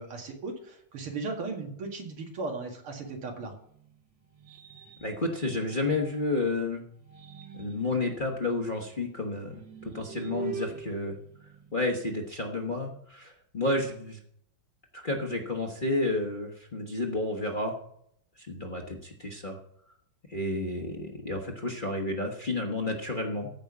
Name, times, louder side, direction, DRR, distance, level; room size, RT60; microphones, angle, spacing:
voice 1, 0.0-3.5, right 3 dB, 80° right, 2 dB, 2.9 m, -36 dB
sound 1, 3.3-6.4 6.9-12.1, right 6 dB, 60° right, 1.9 m, -44 dB
voice 2, 5.0-6.8 7.6-11.2 11.7-14.2 14.9-17.7 18.4-19.6 20.3-23.5, left 2 dB, 30° left, 0 dB, 1.1 m, -31 dB
15.0 x 5.4 x 6.0 m, 0.68 s
omnidirectional pair, 2.3 m